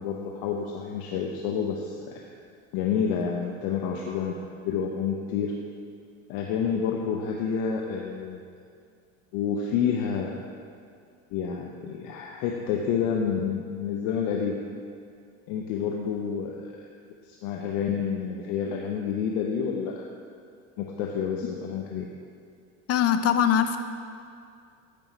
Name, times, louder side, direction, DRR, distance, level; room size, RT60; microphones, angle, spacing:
voice 1, 0.0-2.2 2.7-5.5 6.3-8.4 9.3-10.4 11.3-14.5 15.5-16.9 17.2-20.1 20.8-22.1, left 7 dB, 65° left, 0 dB, 0.9 m, -29 dB
voice 2, 22.9-23.8, left 9 dB, 35° left, 9 dB, 0.7 m, -22 dB
13.5 x 5.4 x 4.4 m, 2.3 s
hypercardioid pair, 85°, 40 cm